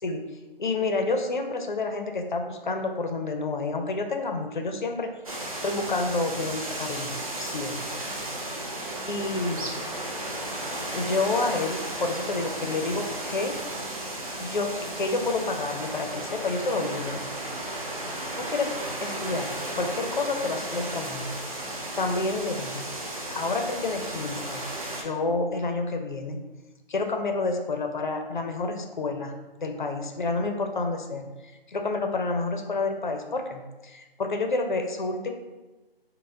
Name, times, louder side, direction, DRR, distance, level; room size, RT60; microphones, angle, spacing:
voice 1, 0.6-5.1 5.6-8.0 9.1-9.7 10.9-13.6 14.4-17.3 18.4-21.4 22.0-22.9 23.3-24.6 25.0-26.4 26.9-35.3, left 3 dB, 55° left, 4 dB, 0.5 m, -29 dB
sound 1, 5.2-25.0, right 1 dB, 35° right, 0.6 m, -34 dB
4.2 x 2.1 x 3.7 m, 1.1 s
figure-of-eight pair, 165°, 30 cm